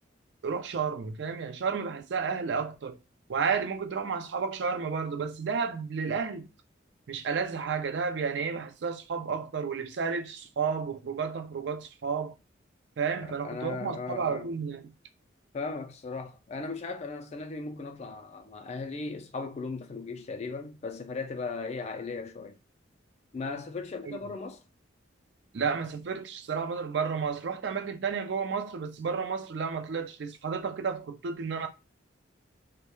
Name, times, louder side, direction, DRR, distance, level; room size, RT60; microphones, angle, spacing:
voice 1, 0.4-3.0 3.3-6.5 7.1-12.3 13.0-14.9 24.0-24.2 25.5-31.7, right 5 dB, 60° right, 0.4 m, -32 dB
voice 2, 13.2-14.5 15.5-22.6 23.3-24.6, left 4 dB, 35° left, 0.3 m, -37 dB
2.2 x 2.1 x 2.9 m
head